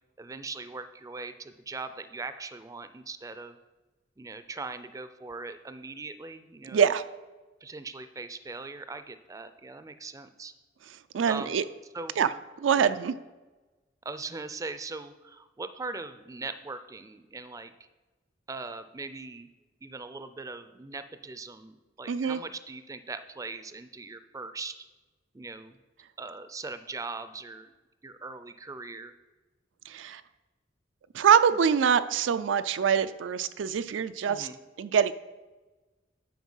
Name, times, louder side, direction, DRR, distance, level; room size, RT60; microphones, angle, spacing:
voice 1, 0.2-3.6 4.2-6.9 7.6-10.5 11.3-11.6 11.9-12.2 12.8-13.0 14.1-17.7 18.5-19.5 19.8-24.8 25.3-25.8 26.2-27.7 28.0-29.1 34.3-34.6, right 3 dB, 20° right, 11 dB, 0.4 m, -40 dB
voice 2, 6.7-7.0 11.1-11.6 12.2-12.3 12.6-13.1 22.1-22.4 29.9-30.2 31.1-34.5 34.8-35.1, right 7 dB, 90° right, 12 dB, 0.4 m, -24 dB
9.5 x 4.5 x 5.5 m, 1.2 s
head